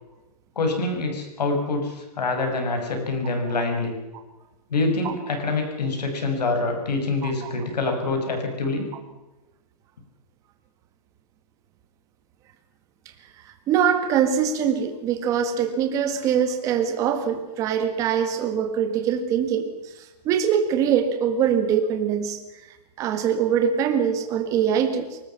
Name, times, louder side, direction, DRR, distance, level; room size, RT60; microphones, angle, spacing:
voice 1, 0.6-3.9 4.7-8.9, left 3 dB, 90° left, 4 dB, 6.8 m, -25 dB
voice 2, 7.2-7.5 13.7-19.7 20.3-22.4 23.0-25.2, right 8 dB, 15° right, 7 dB, 1.8 m, -23 dB
25.0 x 20.0 x 5.9 m, 1.1 s
hypercardioid pair, 175°, 20 cm